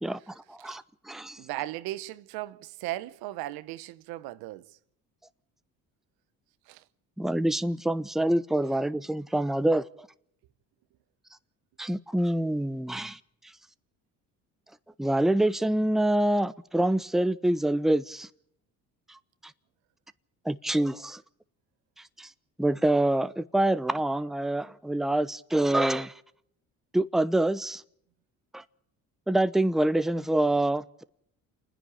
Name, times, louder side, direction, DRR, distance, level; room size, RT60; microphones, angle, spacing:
voice 1, 0.0-1.4 7.2-9.8 11.8-13.2 15.0-18.3 19.1-19.2 20.4-21.2 22.2-22.3 22.6-26.1 26.9-27.8 28.5-28.6 29.3-31.0, right 1 dB, ahead, 0.7 m, -26 dB
voice 2, 1.4-4.8 6.7-6.8, right 16 dB, 85° right, 0.9 m, -37 dB
27.5 x 10.0 x 9.9 m
supercardioid pair, 80°, 36 cm